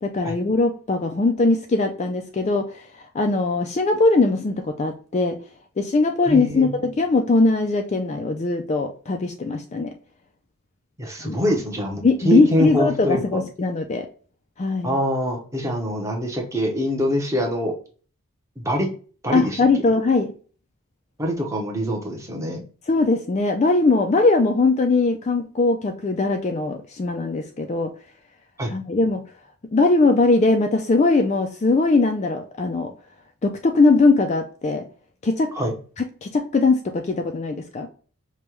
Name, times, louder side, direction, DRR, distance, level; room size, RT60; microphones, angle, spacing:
voice 1, 0.0-2.8 3.1-5.4 5.8-9.9 11.2-11.4 12.0-14.1 14.6-15.0 19.3-20.3 22.9-27.9 28.7-29.2 29.7-32.9 33.4-34.8 35.2-35.5 36.0-37.9, left 3 dB, 30° left, 4 dB, 0.3 m, -20 dB
voice 2, 6.3-6.7 11.0-13.2 14.8-17.7 18.6-18.9 19.2-19.7 21.2-22.6 28.6-28.7 35.5-35.7, equal, 15° right, 1 dB, 0.8 m, -24 dB
5.2 x 2.2 x 3.0 m, 0.39 s
head